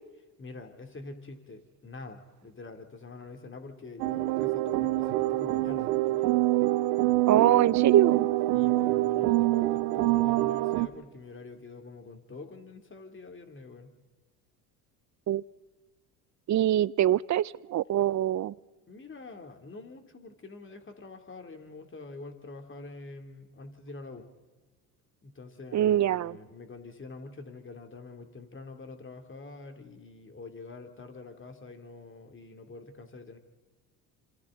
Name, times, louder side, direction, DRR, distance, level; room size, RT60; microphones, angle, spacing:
voice 1, 0.4-6.3 8.5-13.9 18.9-24.3 25.2-33.4, left 3 dB, 25° left, 5 dB, 3.1 m, -46 dB
sound 1, 4.0-10.9, right 18 dB, 85° right, 1.0 m, -25 dB
voice 2, 7.3-8.3 15.3-15.4 16.5-18.5 25.7-26.4, right 12 dB, 40° right, 21 dB, 0.6 m, -24 dB
27.0 x 27.0 x 4.0 m, 1.3 s
hypercardioid pair, 70°, 46 cm